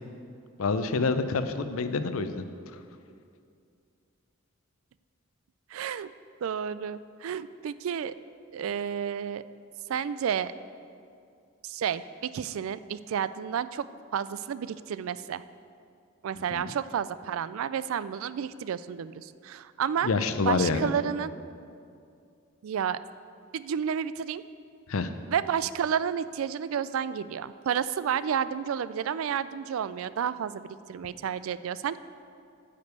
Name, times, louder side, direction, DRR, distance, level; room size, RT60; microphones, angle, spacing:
voice 1, 0.6-2.4 16.5-16.7 20.0-20.9 24.9-25.1, left 4 dB, 75° left, 10 dB, 0.6 m, -27 dB
voice 2, 5.7-6.1 6.4-8.1 8.5-9.4 9.9-10.5 11.6-13.9 14.1-15.4 16.2-20.1 20.4-21.3 22.6-23.0 23.5-24.4 25.3-32.0, right 8 dB, 70° right, 15 dB, 0.3 m, -31 dB
9.3 x 5.2 x 8.0 m, 2.4 s
head